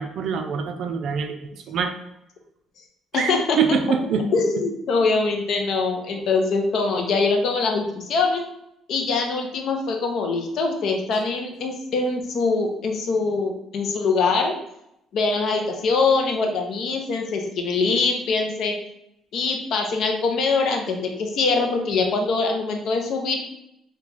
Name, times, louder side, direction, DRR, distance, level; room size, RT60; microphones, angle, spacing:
voice 1, 0.0-1.9 3.1-4.2, right 6 dB, 55° right, 6 dB, 0.3 m, -25 dB
voice 2, 3.1-3.6 4.3-8.4 8.9-14.6 15.1-18.8 19.3-23.4, left 4 dB, 60° left, 3 dB, 0.6 m, -23 dB
3.0 x 2.3 x 3.8 m, 0.81 s
cardioid pair, 150°, 0 cm